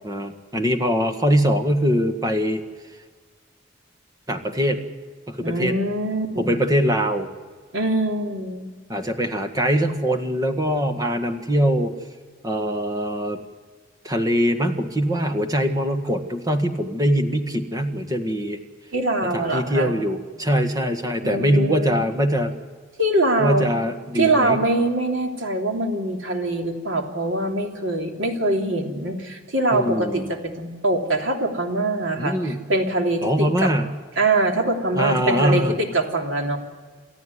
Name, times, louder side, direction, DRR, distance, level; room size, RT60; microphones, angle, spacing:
voice 1, 0.0-2.6 4.3-4.8 5.3-5.7 6.4-7.3 8.9-11.9 12.4-13.4 14.0-18.6 19.3-22.5 23.4-24.6 29.7-30.3 32.2-32.6 33.2-33.9 34.9-35.7, equal, 20° right, 7 dB, 1.7 m, -22 dB
voice 2, 5.4-6.6 7.7-8.7 18.9-19.9 21.2-21.9 23.0-23.7 24.1-33.7 34.2-36.6, right 2 dB, 80° right, 2 dB, 3.1 m, -23 dB
29.0 x 13.5 x 9.6 m, 1.5 s
head